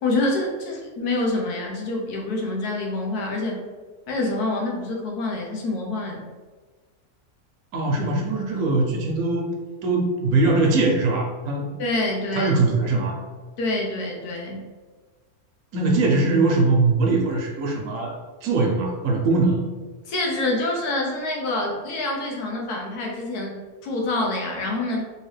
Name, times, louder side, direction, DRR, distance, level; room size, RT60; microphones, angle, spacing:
voice 1, 0.0-3.6 4.1-6.3 11.8-12.5 13.6-14.7 20.1-25.1, left 2 dB, 90° left, 0 dB, 1.3 m, -26 dB
voice 2, 7.7-9.5 9.8-11.7 12.3-13.2 15.7-19.6, right 3 dB, 80° right, 1 dB, 1.2 m, -21 dB
3.5 x 2.8 x 3.2 m, 1.4 s
omnidirectional pair, 1.6 m